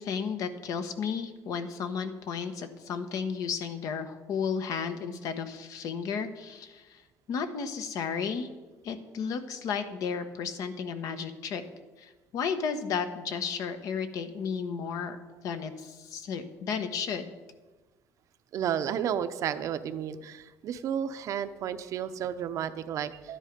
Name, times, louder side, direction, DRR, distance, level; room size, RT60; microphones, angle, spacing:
voice 1, 0.0-7.0 7.3-8.5 8.8-11.6 12.0-15.2 15.4-17.3, left 6 dB, 65° left, 9 dB, 1.2 m, -33 dB
voice 2, 18.5-23.4, right 9 dB, 55° right, 11 dB, 0.7 m, -32 dB
12.0 x 9.9 x 5.3 m, 1.2 s
cardioid pair, 130°, 6 cm